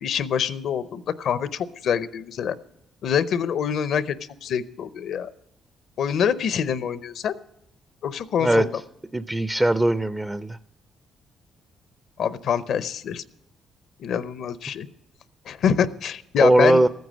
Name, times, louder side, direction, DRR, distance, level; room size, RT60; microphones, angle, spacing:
voice 1, 0.0-2.6 3.0-5.3 6.0-7.3 8.0-8.8 12.2-13.2 14.0-14.9 15.5-16.8, left 8 dB, 70° left, 15 dB, 0.6 m, -25 dB
voice 2, 9.1-10.6 16.4-16.9, right 1 dB, 15° right, 13 dB, 0.4 m, -19 dB
14.5 x 9.3 x 6.2 m, 0.85 s
cardioid pair, 90°, 0 cm